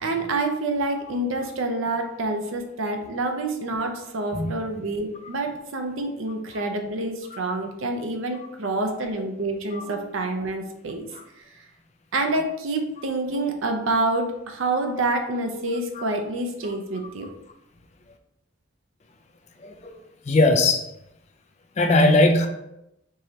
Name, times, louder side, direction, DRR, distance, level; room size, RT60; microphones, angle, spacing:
voice 1, 0.0-11.0 12.1-17.3, right 2 dB, 75° right, 4 dB, 0.6 m, -27 dB
voice 2, 19.6-19.9 20.3-20.8 21.8-22.5, left 2 dB, 30° left, 5 dB, 0.4 m, -20 dB
4.6 x 3.1 x 2.8 m, 0.85 s
head